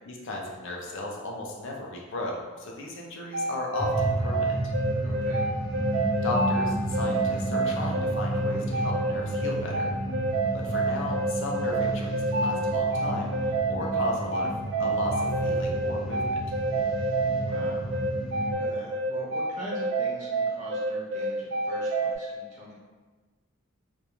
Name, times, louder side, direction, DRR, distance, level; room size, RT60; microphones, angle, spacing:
voice 1, 0.1-4.6 6.2-9.9 10.5-13.3 13.7-14.5 14.8-16.4, left 2 dB, 60° left, -1 dB, 0.4 m, -35 dB
sound 1, 3.3-22.2, right 2 dB, 55° right, 0.3 m, -28 dB
sound 2, 3.8-18.5, right 1 dB, ahead, 0.6 m, -32 dB
voice 2, 5.0-5.5 17.4-17.9 18.2-22.7, equal, 35° right, -6 dB, 0.7 m, -42 dB
2.3 x 2.2 x 2.9 m, 1.3 s
head